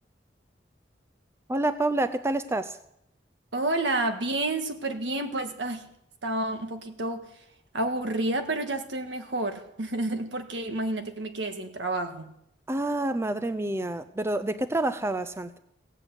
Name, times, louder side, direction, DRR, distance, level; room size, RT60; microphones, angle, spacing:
voice 1, 1.5-2.8 12.7-15.6, right 2 dB, 15° right, 12 dB, 0.5 m, -28 dB
voice 2, 3.5-5.9 6.2-7.3 7.7-12.3, right 2 dB, 75° right, 6 dB, 1.6 m, -30 dB
16.5 x 8.0 x 8.1 m, 0.75 s
head